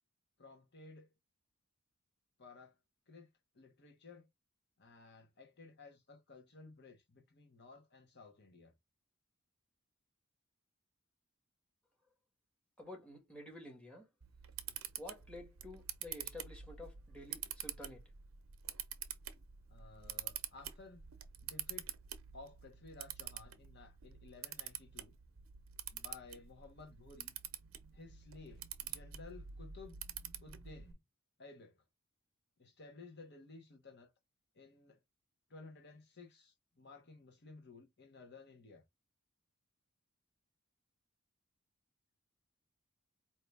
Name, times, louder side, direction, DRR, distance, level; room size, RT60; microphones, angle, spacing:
voice 1, 0.4-1.1 2.4-2.7 3.1-4.3 4.8-8.7 19.7-21.0 21.4-21.9 22.3-25.1 25.9-27.3 27.9-30.0 30.4-31.0 31.4-31.8 32.6-34.1 34.5-35.0 35.5-38.8, left 3 dB, 55° left, 1.2 m, -56 dB
voice 2, 12.8-14.0 15.0-18.0, left 1 dB, 5° left, 1.6 m, -50 dB
Camera, 14.2-30.9, right 10 dB, 70° right, 0.7 m, -47 dB
4.6 x 2.9 x 3.4 m
head